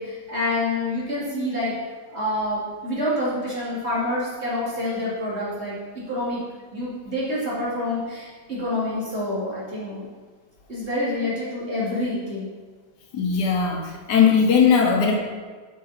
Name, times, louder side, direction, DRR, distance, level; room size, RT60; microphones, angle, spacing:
voice 1, 0.0-1.7 2.1-6.4 6.7-10.1 10.7-12.5, left 1 dB, 40° right, -8 dB, 2.6 m, -27 dB
voice 2, 13.1-15.2, left 6 dB, 75° left, 1 dB, 1.6 m, -19 dB
8.1 x 5.6 x 4.1 m, 1.4 s
omnidirectional pair, 1.8 m